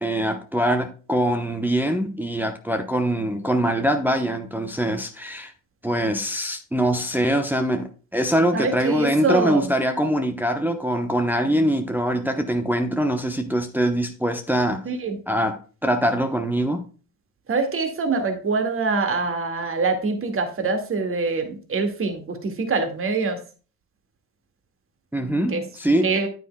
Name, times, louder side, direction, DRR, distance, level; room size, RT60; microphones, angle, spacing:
voice 1, 0.0-5.5 5.8-14.8 15.3-16.8 25.1-26.2, right 1 dB, 5° right, 0.9 m, -23 dB
voice 2, 8.5-9.6 14.9-15.2 17.5-23.4 25.5-25.6 26.0-26.3, right 4 dB, 30° right, 2.0 m, -24 dB
10.0 x 9.0 x 2.2 m
figure-of-eight pair, 60°, 45 cm